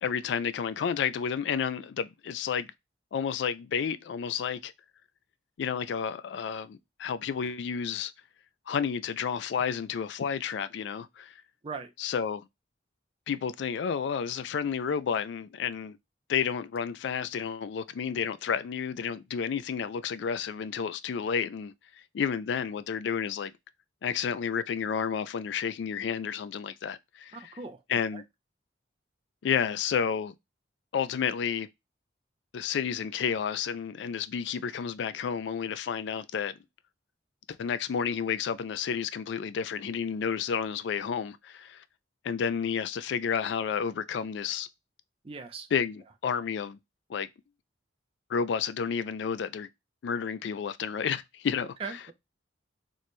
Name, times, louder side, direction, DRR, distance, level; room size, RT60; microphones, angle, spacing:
voice 1, 0.0-2.7 3.1-4.7 5.6-8.1 8.7-11.3 12.0-12.4 13.3-16.0 16.3-21.7 22.1-23.5 24.0-27.5 27.9-28.2 29.4-30.3 30.9-31.7 32.5-36.5 37.6-41.8 42.2-44.7 45.7-46.8 47.1-47.3 48.3-49.7 50.0-51.7, left 7 dB, 70° left, 0.3 m, -31 dB
voice 2, 27.3-27.8 28.1-28.2 45.2-45.7 51.8-52.1, right 4 dB, 30° right, 0.4 m, -39 dB
3.1 x 2.1 x 4.0 m
head